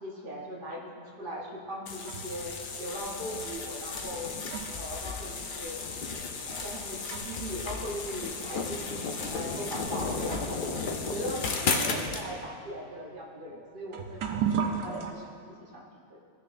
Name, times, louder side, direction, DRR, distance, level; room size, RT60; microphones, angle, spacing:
voice 1, 0.0-5.8 6.4-10.6 11.0-16.2, equal, 40° right, -2 dB, 0.8 m, -39 dB
sound 1, 1.4-2.5 3.4-3.5 4.1-7.6 7.9-8.0 8.8-8.9 9.8-9.9 10.2-15.1, right 7 dB, 85° right, 1.2 m, -37 dB
sound 2, 1.9-12.2, left 4 dB, 65° left, 0.5 m, -34 dB
15.0 x 6.0 x 2.5 m, 2.3 s
omnidirectional pair, 1.7 m